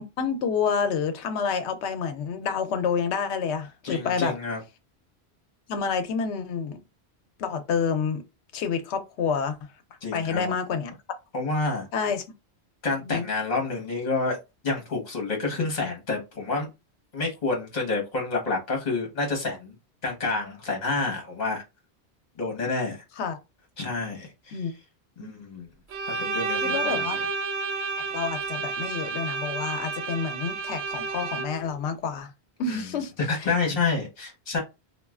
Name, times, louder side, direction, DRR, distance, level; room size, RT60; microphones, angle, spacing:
voice 1, 0.2-4.3 5.7-6.8 7.4-8.2 8.5-9.6 10.1-10.9 11.9-12.2 13.1-13.2 23.2-23.4 24.5-24.7 25.2-25.3 26.6-27.2 28.1-32.3 32.6-33.1, left 6 dB, 90° left, 0.9 m, -28 dB
voice 2, 3.8-4.6 10.0-10.5 11.3-11.9 12.8-14.4 14.6-16.7 17.1-19.7 20.0-21.6 22.4-23.0 23.8-24.6 25.2-25.7 26.2-27.2 32.7-32.9 33.2-34.6, left 3 dB, 40° left, 1.0 m, -28 dB
Bowed string instrument, 25.9-31.7, right 4 dB, 85° right, 0.9 m, -30 dB
3.0 x 2.3 x 2.3 m
omnidirectional pair, 1.1 m